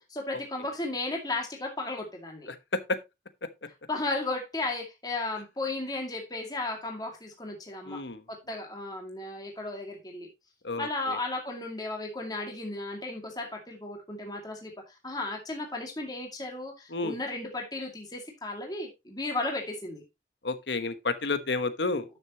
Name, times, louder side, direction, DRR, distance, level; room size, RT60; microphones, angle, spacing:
voice 1, 0.1-2.5 3.9-8.0 8.3-10.3 10.8-20.0, left 2 dB, 20° left, 2.3 m, -35 dB
voice 2, 2.5-3.0 7.9-8.2 10.6-11.2 16.9-17.2 20.4-22.1, left 3 dB, 75° left, 1.2 m, -31 dB
11.5 x 6.8 x 2.9 m
head